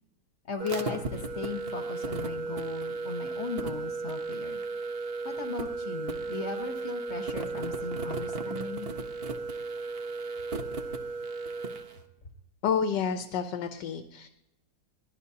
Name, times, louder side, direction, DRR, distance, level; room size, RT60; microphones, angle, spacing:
voice 1, 0.5-4.6 5.2-8.9, left 4 dB, 40° left, 4 dB, 1.3 m, -37 dB
sound 1, 0.6-11.9, right 3 dB, 40° right, 1.1 m, -35 dB
voice 2, 12.6-14.3, left 7 dB, 75° left, 8 dB, 1.4 m, -29 dB
22.5 x 17.5 x 2.8 m, 0.92 s
omnidirectional pair, 2.0 m